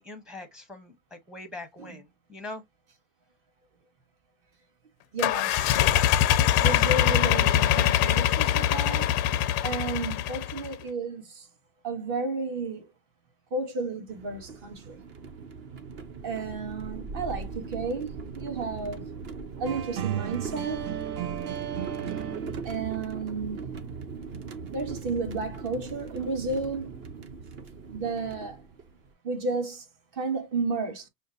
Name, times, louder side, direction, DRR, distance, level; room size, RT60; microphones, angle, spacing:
voice 1, 0.0-2.6, left 2 dB, ahead, 0.8 m, -42 dB
voice 2, 5.1-5.8 6.6-9.1 9.6-11.5 11.8-12.9 13.5-15.0 16.2-19.1 19.6-20.9 22.6-23.8 24.7-26.9 27.9-28.6 29.2-29.8 30.1-31.1, right 3 dB, 40° right, 1.6 m, -32 dB
sound 1, 5.2-10.7, left 12 dB, 35° left, 0.4 m, -23 dB
sound 2, 14.1-29.1, right 5 dB, 25° right, 0.4 m, -40 dB
sound 3, 19.6-22.9, right 10 dB, 65° right, 0.8 m, -34 dB
6.2 x 2.3 x 2.6 m
hypercardioid pair, 120°, 49 cm